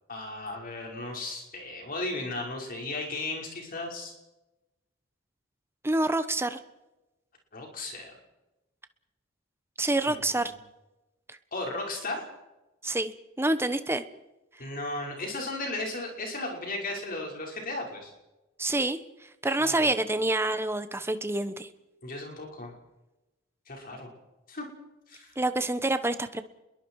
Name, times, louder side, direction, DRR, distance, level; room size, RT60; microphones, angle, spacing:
voice 1, 0.1-4.1 7.5-8.1 10.0-10.5 11.5-12.2 14.6-18.1 19.6-19.9 22.0-22.7 23.7-24.1 24.5-24.6 25.1-25.4, left 2 dB, 45° left, 0 dB, 5.5 m, -35 dB
voice 2, 5.8-6.6 9.8-10.5 12.8-14.0 18.6-19.0 19.4-21.7 25.4-26.4, right 2 dB, 10° right, 10 dB, 1.1 m, -27 dB
28.0 x 22.0 x 4.8 m, 1.0 s
head